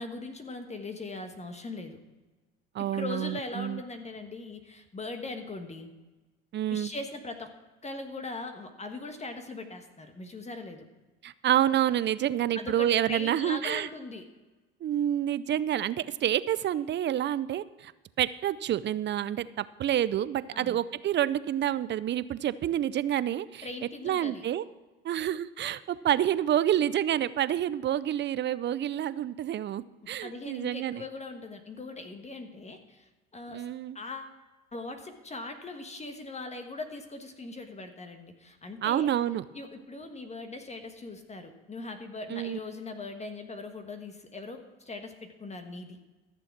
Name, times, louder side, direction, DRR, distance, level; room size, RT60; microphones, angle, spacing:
voice 1, 0.0-2.0 2.9-5.9 6.7-7.5 7.8-10.9 12.5-14.2 20.5-20.8 23.6-24.4 30.2-33.7 33.9-34.4 34.7-39.1 39.5-46.0, left 3 dB, 20° left, 6 dB, 1.3 m, -40 dB
voice 2, 2.7-3.8 6.5-6.9 11.2-13.9 14.8-17.9 18.2-23.7 24.0-24.6 25.0-31.0 33.5-34.0 38.8-39.4 42.3-42.6, right 11 dB, 35° right, 16 dB, 0.5 m, -28 dB
14.0 x 7.0 x 5.9 m, 1.2 s
supercardioid pair, 85°, 31 cm